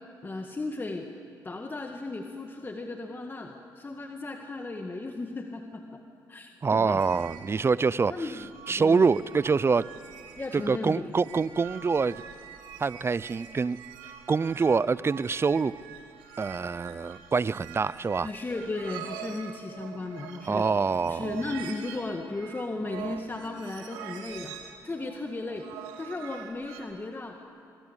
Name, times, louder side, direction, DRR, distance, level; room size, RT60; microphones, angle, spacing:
voice 1, 0.2-1.1 1.4-6.0 6.3-7.2 8.1-8.4 8.7-9.1 10.4-11.2 18.2-20.7 21.0-24.5 24.8-25.7 26.0-27.4, left 2 dB, 25° left, 3 dB, 1.9 m, -35 dB
voice 2, 6.6-8.1 8.7-9.8 10.5-12.2 12.8-13.8 14.3-15.7 16.4-18.3 20.5-21.2, right 5 dB, 30° right, 20 dB, 0.6 m, -25 dB
sound 1, 7.0-26.8, right 8 dB, 90° right, 2.1 m, -45 dB
25.0 x 21.5 x 8.3 m, 2.7 s
supercardioid pair, 60°, 8 cm